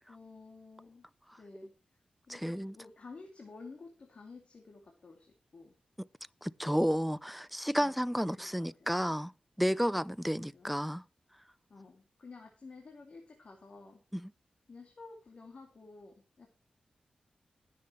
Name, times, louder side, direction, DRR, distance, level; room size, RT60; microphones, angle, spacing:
voice 1, 0.1-1.1 1.4-1.7 2.3-5.8 7.8-8.0 8.4-8.9 10.4-10.7 11.7-14.0 14.7-16.5, left 3 dB, 55° left, 2.5 m, -52 dB
voice 2, 2.3-2.8 6.4-9.3 9.6-11.0 14.1-14.3, equal, ahead, 0.5 m, -31 dB
20.5 x 7.7 x 3.1 m
cardioid pair, 75°, 2 cm